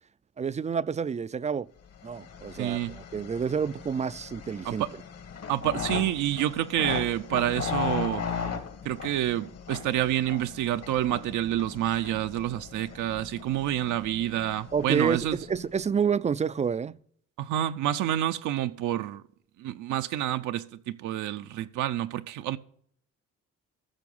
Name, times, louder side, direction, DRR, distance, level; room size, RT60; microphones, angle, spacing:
voice 1, 0.4-1.7 2.0-4.8 14.7-17.0, right 6 dB, 25° right, 0.3 m, -29 dB
sound 1, 1.9-15.8, left 6 dB, 55° left, 1.6 m, -38 dB
voice 2, 2.6-3.0 4.6-4.9 5.5-8.2 8.8-15.4 17.4-19.2 19.6-22.6, right 12 dB, 80° right, 0.6 m, -28 dB
14.5 x 6.0 x 5.4 m
cardioid pair, 90°, 30 cm